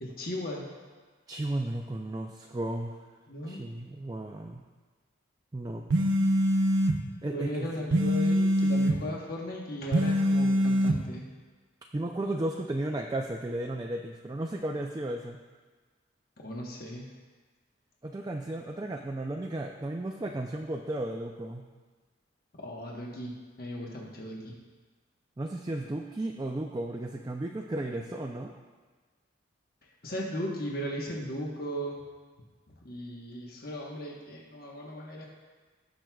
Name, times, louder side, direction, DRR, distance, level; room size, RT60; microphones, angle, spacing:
voice 1, 0.0-0.6 3.3-3.6 7.3-11.2 16.4-17.0 22.6-23.3 23.6-24.5 30.0-32.0 32.8-35.3, equal, 50° left, -2 dB, 1.1 m, -37 dB
voice 2, 1.3-3.0 3.5-4.6 5.5-5.9 7.2-7.7 11.9-15.4 18.0-21.6 25.4-28.5, right 1 dB, 20° right, 2 dB, 0.4 m, -34 dB
sound 1, 5.9-7.0 7.9-9.0 9.9-11.0, equal, 70° right, 0.7 m, -24 dB
18.0 x 6.1 x 2.3 m, 1.4 s
head